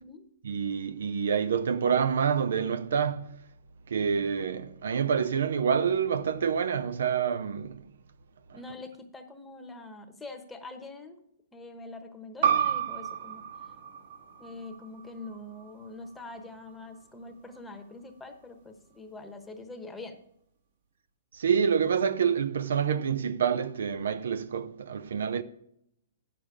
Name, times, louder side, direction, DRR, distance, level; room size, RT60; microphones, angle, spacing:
voice 1, 0.4-3.4 3.9-7.9 21.3-25.4, right 7 dB, 80° right, 0.6 m, -27 dB
voice 2, 8.5-11.2 11.5-13.5 14.4-20.2, left 2 dB, 5° left, 1.0 m, -44 dB
sound 1, 12.4-17.6, right 8 dB, 60° right, 1.6 m, -32 dB
9.0 x 6.8 x 4.9 m
hypercardioid pair, 140°, 0 cm